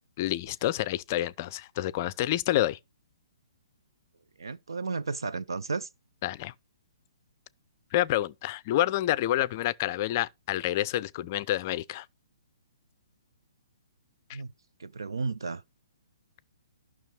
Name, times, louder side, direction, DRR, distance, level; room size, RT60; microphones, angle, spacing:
voice 1, 0.2-2.8 6.2-6.5 7.9-12.1, left 14 dB, 35° left, 0.4 m, -28 dB
voice 2, 4.4-5.9 14.3-14.5 14.8-15.6, right 4 dB, 65° right, 0.5 m, -33 dB
12.0 x 6.0 x 4.5 m
figure-of-eight pair, 125°, 3 cm